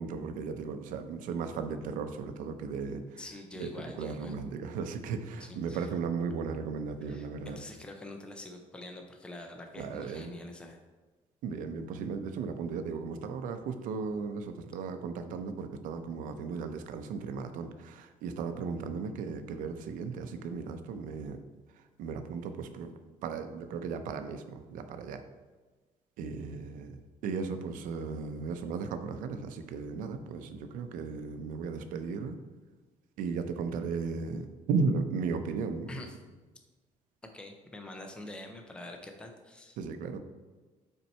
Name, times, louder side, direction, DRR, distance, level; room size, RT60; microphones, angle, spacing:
voice 1, 0.0-3.2 3.6-7.6 9.8-10.3 11.4-21.4 21.7-22.9 23.2-25.2 26.2-32.4 33.2-36.0 39.8-40.2, right 5 dB, 85° right, 8 dB, 0.6 m, -36 dB
voice 2, 3.2-4.4 5.4-5.9 7.1-7.3 7.6-10.8 35.9-36.2 37.3-39.8, left 2 dB, 5° left, 3 dB, 0.5 m, -45 dB
5.6 x 4.5 x 4.3 m, 1.3 s
cardioid pair, 175°, 13 cm